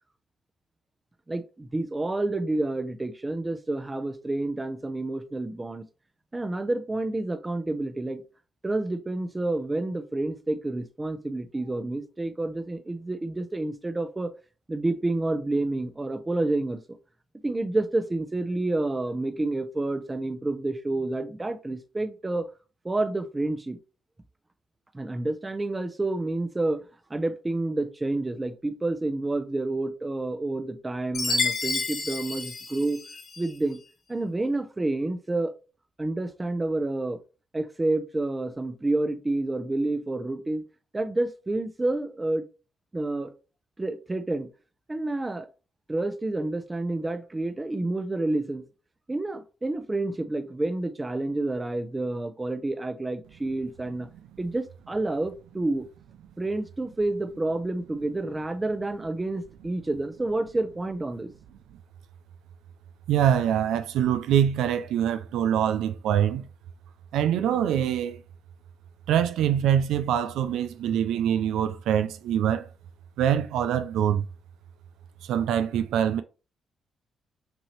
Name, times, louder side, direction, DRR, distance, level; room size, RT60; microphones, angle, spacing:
voice 1, 1.3-5.8 6.3-8.2 8.6-14.3 14.7-16.8 17.4-22.5 22.8-23.8 24.9-26.8 27.1-33.0 33.4-33.8 34.1-35.5 36.0-37.2 37.5-40.6 40.9-42.4 42.9-43.3 43.8-44.5 44.9-45.5 45.9-48.6 49.1-54.1 54.4-55.9 56.4-61.3, right 2 dB, 20° right, 0.7 m, -29 dB
Chime, 31.1-33.5, left 3 dB, 55° left, 1.5 m, -30 dB
voice 2, 63.1-66.4 67.1-68.2 69.1-72.7 73.2-74.2 75.2-76.2, right 9 dB, 90° right, 0.4 m, -24 dB
6.0 x 2.7 x 3.2 m
cardioid pair, 85°, 0 cm